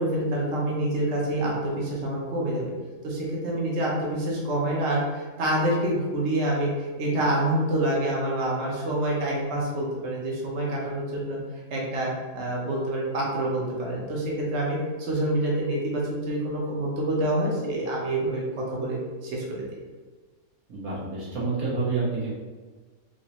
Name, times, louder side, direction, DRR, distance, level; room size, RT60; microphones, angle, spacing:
voice 1, 0.0-2.7 3.0-11.4 11.7-18.4 18.7-19.6, right 1 dB, 55° right, -3 dB, 1.1 m, -27 dB
voice 2, 20.7-22.3, right 3 dB, 80° right, -7 dB, 1.8 m, -28 dB
4.1 x 2.7 x 2.9 m, 1.4 s
omnidirectional pair, 1.5 m